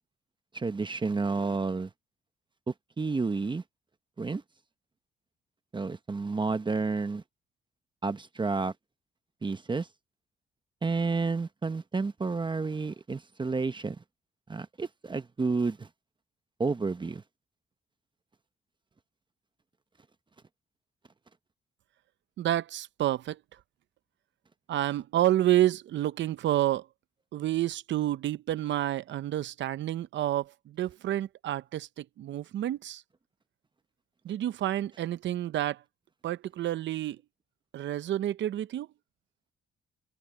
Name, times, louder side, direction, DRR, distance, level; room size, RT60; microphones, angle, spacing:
voice 1, 0.5-1.9 2.7-3.6 4.2-4.4 5.7-7.2 8.0-8.7 9.4-9.9 10.8-14.0 14.5-15.9 16.6-17.2, right 4 dB, 25° right, 1.0 m, -30 dB
voice 2, 22.4-23.4 24.7-26.9 27.3-33.0 34.2-35.8 36.2-37.2 37.7-38.9, right 13 dB, 65° right, 0.8 m, -29 dB
cardioid pair, 90°, 20 cm